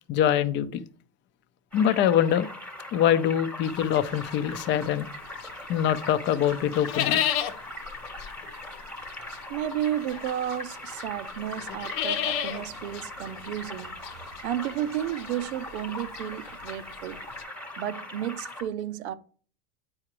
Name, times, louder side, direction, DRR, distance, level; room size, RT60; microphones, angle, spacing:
voice 1, 0.1-0.7 1.7-2.5 2.9-5.1 5.7-7.2, left 10 dB, 35° left, 0.6 m, -24 dB
sound 1, 1.7-18.6, left 1 dB, 5° left, 1.1 m, -41 dB
sound 2, 3.6-5.6 6.0-17.4, left 10 dB, 60° left, 0.9 m, -33 dB
voice 2, 9.5-14.1 14.4-17.2 17.8-19.1, right 11 dB, 75° right, 0.7 m, -32 dB
8.6 x 4.9 x 3.0 m
supercardioid pair, 125°, 33 cm